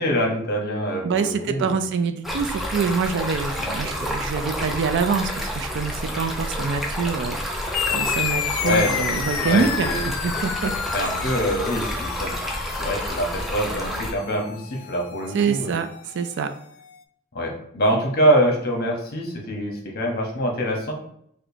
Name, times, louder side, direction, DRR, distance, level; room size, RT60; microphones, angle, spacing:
voice 1, 0.0-1.8 8.6-8.9 9.4-10.0 10.9-12.4 12.8-15.7 17.3-20.9, equal, 50° left, 1 dB, 0.9 m, -24 dB
voice 2, 1.0-10.7 11.0-11.2 15.3-15.9 16.1-16.5, right 5 dB, 60° right, 8 dB, 0.3 m, -25 dB
Stream, 2.2-14.1, equal, ahead, 0.5 m, -29 dB
sound 1, 7.7-16.6, left 9 dB, 80° left, 0.3 m, -31 dB
4.9 x 2.2 x 2.7 m, 0.69 s
head